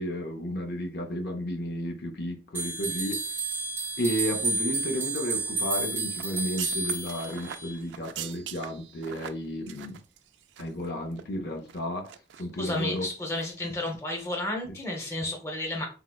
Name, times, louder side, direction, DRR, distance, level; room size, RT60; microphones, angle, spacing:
voice 1, 0.0-3.2 4.0-10.0 10.6-12.1 12.4-13.1, left 1 dB, 60° left, 0.5 m, -32 dB
sound 1, 2.5-7.8, right 3 dB, 15° right, 0.6 m, -31 dB
sound 2, 6.2-10.9 11.1-11.2 11.7-12.4 12.8-13.0 13.3-13.5 13.8-13.9, right 9 dB, 85° right, 0.3 m, -42 dB
voice 2, 12.6-15.9, left 1 dB, 15° left, 0.8 m, -32 dB
4.3 x 2.0 x 2.3 m
head